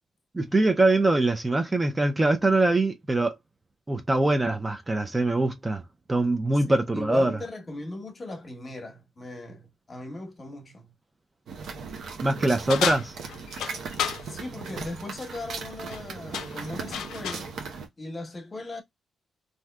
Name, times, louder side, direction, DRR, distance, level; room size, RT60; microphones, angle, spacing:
voice 1, 0.3-3.4 3.9-5.8 6.1-7.4 12.2-13.2, right 2 dB, 20° right, 0.5 m, -23 dB
voice 2, 6.5-10.9 14.3-17.5 18.0-18.8, left 2 dB, 35° left, 1.0 m, -38 dB
sound 1, 11.5-17.9, right 5 dB, 75° right, 0.7 m, -38 dB
sound 2, 12.7-14.2 15.7-16.0 16.3-17.5, left 8 dB, 85° left, 0.4 m, -31 dB
3.4 x 2.6 x 2.2 m
cardioid pair, 80°, 0 cm